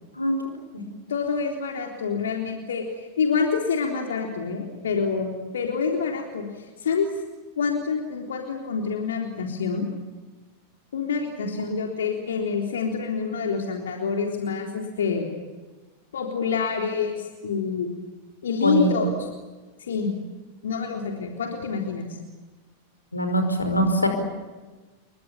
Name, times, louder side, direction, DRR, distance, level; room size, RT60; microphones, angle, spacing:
voice 1, 1.1-7.1 7.6-9.9 10.9-15.3 16.1-17.9 18.4-19.3 19.8-20.1 20.6-22.1, left 5 dB, 65° left, 2 dB, 3.7 m, -27 dB
voice 2, 23.1-24.1, right 1 dB, 80° left, 6 dB, 5.3 m, -22 dB
30.0 x 23.5 x 7.2 m, 1.3 s
figure-of-eight pair, 90°, 0 cm